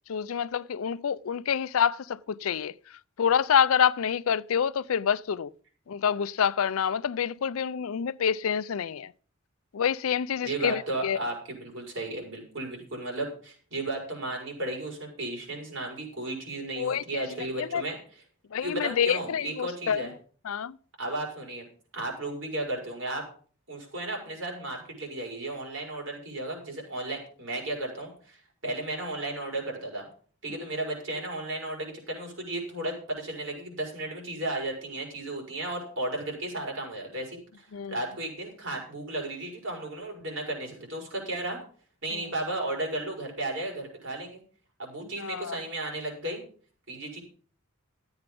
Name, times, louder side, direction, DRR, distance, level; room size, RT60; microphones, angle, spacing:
voice 1, 0.1-5.5 5.9-9.1 9.7-11.2 16.7-17.3 17.6-17.8 18.5-20.1 20.4-20.8 30.5-30.7 37.7-38.0 42.1-42.2 45.2-45.6, left 7 dB, 80° left, 0.4 m, -27 dB
voice 2, 10.4-18.0 18.6-20.1 21.0-21.7 21.9-23.2 23.7-30.1 30.4-41.6 42.0-44.4 44.8-46.4 46.9-47.2, right 2 dB, 65° right, 5.3 m, -34 dB
13.5 x 8.0 x 5.3 m
head